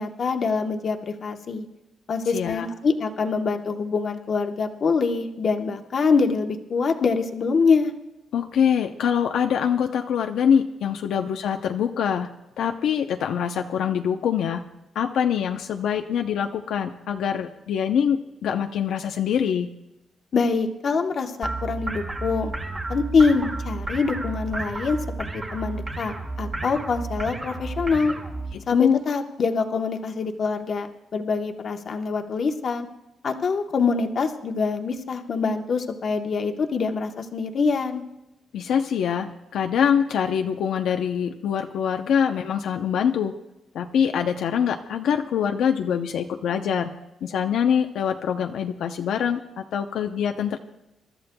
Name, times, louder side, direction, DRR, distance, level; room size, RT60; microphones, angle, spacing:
voice 1, 0.0-1.7 2.1-7.9 20.3-22.5 22.9-28.1 28.7-32.9 33.2-38.0, left 4 dB, 45° left, 5 dB, 1.0 m, -24 dB
voice 2, 2.3-2.7 8.3-19.8 28.5-29.0 38.5-43.3 43.7-47.0 47.2-50.6, left 8 dB, 75° left, 5 dB, 0.6 m, -24 dB
sound 1, 21.4-28.5, right 2 dB, 20° right, 1.7 m, -32 dB
28.0 x 13.0 x 2.3 m, 0.93 s
cardioid pair, 150°, 0 cm